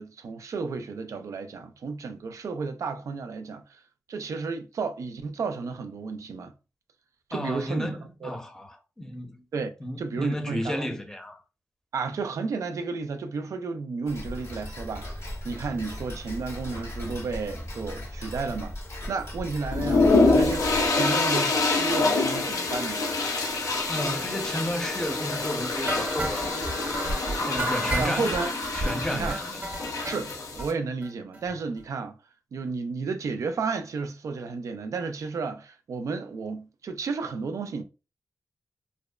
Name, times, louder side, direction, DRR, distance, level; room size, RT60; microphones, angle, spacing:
voice 1, 0.0-3.8 4.1-6.5 7.3-8.4 9.5-9.7 10.0-10.9 11.9-18.7 19.1-23.1 27.9-28.5 29.1-29.4 30.0-32.2 32.5-37.8, right 4 dB, 70° right, 0.3 m, -32 dB
voice 2, 7.3-9.4 9.8-11.4 23.9-26.5 27.4-28.3 28.7-29.6, equal, 10° left, 0.6 m, -32 dB
Tick-tock, 14.1-20.9, equal, 60° left, 1.1 m, -36 dB
sound 1, 19.7-30.7, left 3 dB, 90° left, 0.5 m, -26 dB
sound 2, 25.9-30.2 30.6-30.7 31.0-31.1 31.3-31.5 31.8-31.9, right 2 dB, 30° right, 0.7 m, -33 dB
2.6 x 2.1 x 2.3 m
cardioid pair, 60°, 6 cm